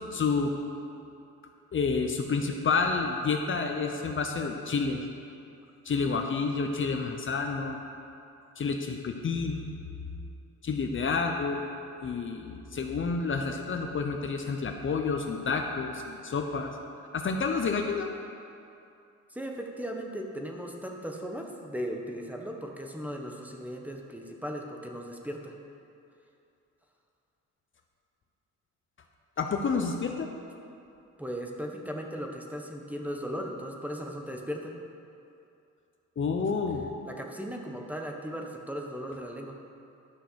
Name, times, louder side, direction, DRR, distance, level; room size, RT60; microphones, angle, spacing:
voice 1, 0.1-0.5 1.7-5.0 5.8-7.8 8.6-9.6 10.6-11.6 12.0-16.7 17.1-18.1 29.4-30.3 36.2-36.9, left 4 dB, 40° left, 4 dB, 0.8 m, -29 dB
voice 2, 19.3-25.5 31.2-34.7 37.0-39.6, equal, 5° right, 1 dB, 1.2 m, -37 dB
11.5 x 6.2 x 6.4 m, 2.7 s
cardioid pair, 90°, 30 cm